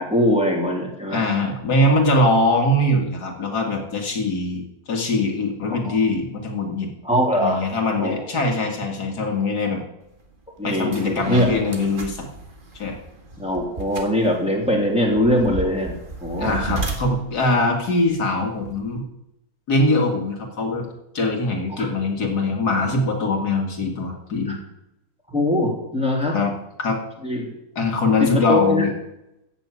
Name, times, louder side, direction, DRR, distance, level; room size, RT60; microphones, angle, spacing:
voice 1, 0.0-1.2 1.8-1.9 5.7-6.0 7.0-7.6 8.0-8.4 10.6-11.5 13.4-15.9 16.2-16.6 21.7-21.9 24.5-24.6 25.3-26.4 27.2-27.5 28.2-28.9, left 1 dB, 5° right, -1 dB, 3.1 m, -22 dB
voice 2, 1.1-6.9 7.3-9.8 10.6-12.3 12.7-12.9 16.4-19.0 19.7-20.9 21.1-24.6 26.3-26.5 26.8-27.0 27.8-28.9, left 2 dB, 80° left, 2 dB, 2.7 m, -22 dB
sound 1, 10.2-10.3 10.7-19.0, right 3 dB, 35° right, 2.0 m, -34 dB
14.5 x 6.7 x 8.4 m, 0.86 s
omnidirectional pair, 1.7 m